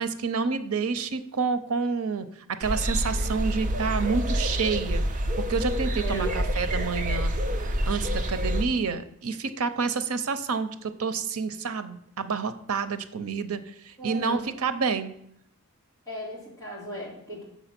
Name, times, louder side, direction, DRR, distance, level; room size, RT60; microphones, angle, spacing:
voice 1, 0.0-5.0 5.4-13.6 13.8-15.1, right 5 dB, 90° right, 10 dB, 0.7 m, -29 dB
sound 1, 2.6-8.6, equal, 35° right, 0.7 m, -27 dB
voice 2, 6.0-6.4 14.0-14.4 16.1-17.4, right 1 dB, 15° left, -5 dB, 2.8 m, -36 dB
7.0 x 6.1 x 5.9 m, 0.74 s
head